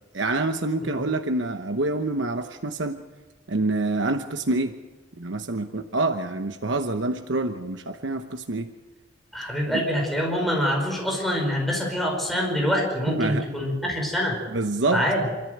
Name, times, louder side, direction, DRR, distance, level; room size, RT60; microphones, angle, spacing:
voice 1, 0.1-3.0 3.5-4.8 5.2-8.7 9.7-9.8 13.1-13.4 14.5-15.0, right 2 dB, 75° right, 6 dB, 1.0 m, -26 dB
voice 2, 9.3-14.4 14.9-15.2, equal, ahead, -1 dB, 5.1 m, -25 dB
27.0 x 14.0 x 8.0 m, 1.2 s
head